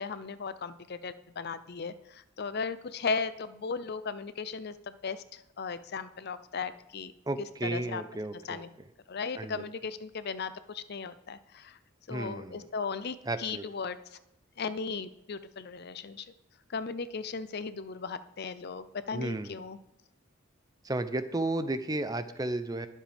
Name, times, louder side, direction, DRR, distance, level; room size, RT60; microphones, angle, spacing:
voice 1, 0.0-7.1 7.6-8.0 8.4-8.7 9.1-11.8 12.1-14.2 14.6-16.2 16.7-19.8, left 5 dB, 50° left, 13 dB, 0.6 m, -36 dB
voice 2, 7.3-8.9 9.3-9.6 12.1-12.7 13.2-13.7 19.1-19.6 20.8-22.9, right 2 dB, 20° right, 11 dB, 0.6 m, -33 dB
21.5 x 7.6 x 3.5 m, 0.86 s
head